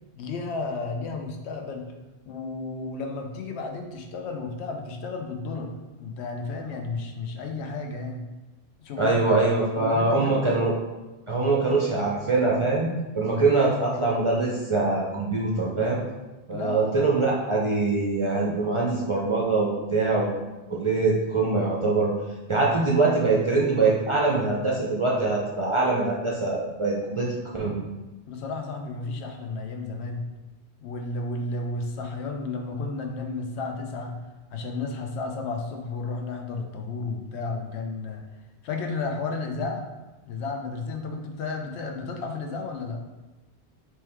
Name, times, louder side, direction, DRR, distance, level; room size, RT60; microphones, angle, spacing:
voice 1, 0.2-1.9 2.3-5.7 6.0-8.2 8.8-9.4 9.8-10.5 16.5-16.9 28.3-30.2 30.8-34.2 34.5-38.2 38.6-39.9 40.3-43.0, left 3 dB, 75° left, 3 dB, 0.9 m, -32 dB
voice 2, 9.0-10.7 11.3-12.9 13.1-16.0 16.5-20.3 20.7-22.1 22.5-27.3 27.5-27.7, right 3 dB, 40° right, -4 dB, 0.5 m, -23 dB
4.4 x 3.1 x 3.4 m, 1.1 s
omnidirectional pair, 1.1 m